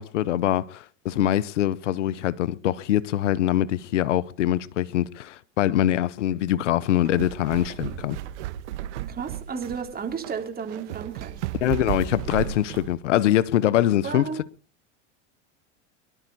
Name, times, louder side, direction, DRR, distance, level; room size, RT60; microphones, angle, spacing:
voice 1, 0.0-8.2 11.6-14.3, left 12 dB, 90° left, 0.8 m, -23 dB
sound 1, 6.9-12.9, right 13 dB, 70° right, 1.4 m, -34 dB
voice 2, 9.1-11.4 14.0-14.4, right 6 dB, 25° right, 3.5 m, -33 dB
24.0 x 12.0 x 4.1 m
hypercardioid pair, 110°, 36 cm